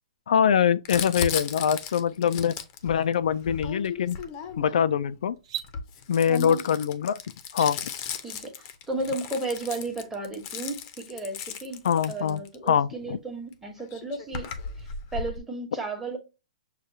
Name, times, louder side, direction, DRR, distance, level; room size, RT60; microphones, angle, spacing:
voice 1, 0.3-2.6 2.8-4.2 4.6-5.3 6.1-7.2 7.5-7.8 11.8-12.4 12.7-13.2, left 8 dB, 70° left, 0.3 m, -23 dB
Crumpling crinkling, 0.9-4.9 5.6-12.7 13.5-13.6 13.8-15.4, left 6 dB, 35° left, 0.6 m, -36 dB
sound 1, 5.4-5.7 7.4-7.7 9.5-9.8, right 12 dB, 45° right, 1.0 m, -36 dB
voice 2, 6.3-6.6 8.2-14.5 14.8-16.2, right 2 dB, 10° right, 1.1 m, -34 dB
6.6 x 2.3 x 2.7 m
hypercardioid pair, 145°, 4 cm